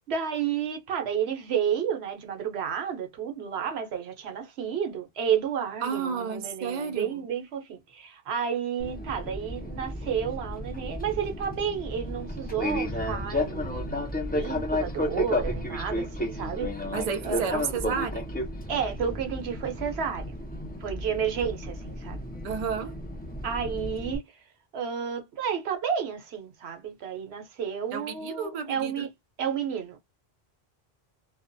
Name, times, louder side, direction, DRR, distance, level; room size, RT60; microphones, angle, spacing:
voice 1, 0.1-16.7 17.2-17.5 18.7-20.3 20.8-22.2 23.4-24.2 24.7-29.1 29.4-30.0, right 7 dB, 85° right, 1.0 m, -31 dB
voice 2, 5.8-7.2 16.9-18.3 22.4-23.0 27.9-29.1, right 6 dB, 50° right, 0.5 m, -31 dB
Fixed-wing aircraft airplane, 8.8-24.2, left 1 dB, 15° left, 0.3 m, -33 dB
2.5 x 2.1 x 2.5 m
omnidirectional pair, 1.0 m